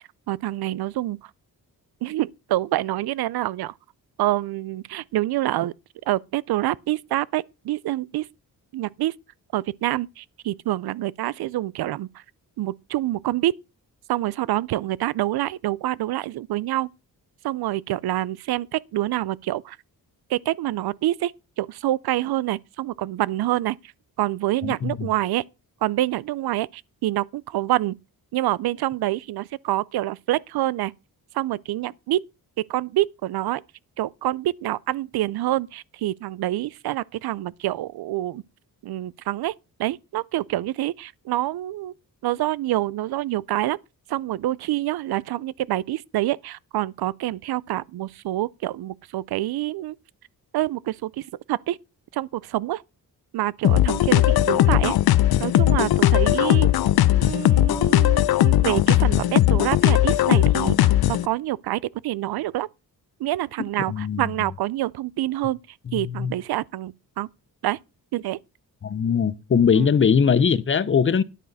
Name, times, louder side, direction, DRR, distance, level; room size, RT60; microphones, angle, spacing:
voice 1, 0.3-1.2 2.0-3.7 4.2-5.7 6.1-8.3 8.7-9.1 9.5-12.2 12.6-13.6 14.1-16.9 17.4-19.8 20.3-21.3 21.6-23.8 24.2-25.4 25.8-28.0 28.3-30.9 31.3-32.2 32.7-33.6 34.0-38.4 38.8-39.5 39.8-41.9 42.2-43.8 44.1-50.0 50.5-51.8 52.1-52.8 53.3-55.0 55.4-56.7 57.2-62.7 63.2-65.6 65.9-67.3 67.6-67.8 68.1-68.4 69.7-69.9, right 15 dB, 85° right, 0.5 m, -26 dB
voice 2, 24.6-25.1 63.9-64.3 65.9-66.3 68.8-71.2, left 6 dB, 35° left, 0.6 m, -21 dB
sound 1, 53.6-61.3, left 13 dB, 85° left, 0.6 m, -18 dB
10.0 x 9.0 x 4.0 m
wide cardioid pair, 145°, 37 cm